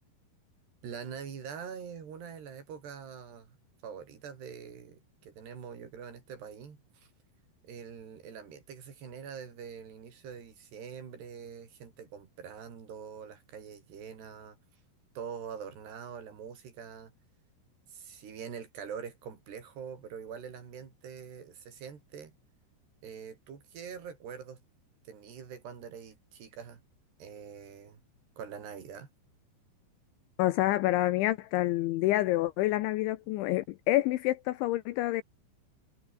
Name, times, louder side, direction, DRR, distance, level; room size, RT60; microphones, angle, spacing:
voice 1, 0.8-3.6 3.8-7.1 7.6-14.6 15.2-17.1 17.9-22.3 23.0-24.6 25.1-26.8 27.2-28.0 28.4-29.1, right 7 dB, 55° right, 5.9 m, -44 dB
voice 2, 30.4-35.2, left 17 dB, 80° left, 3.1 m, -28 dB
omnidirectional pair, 5.8 m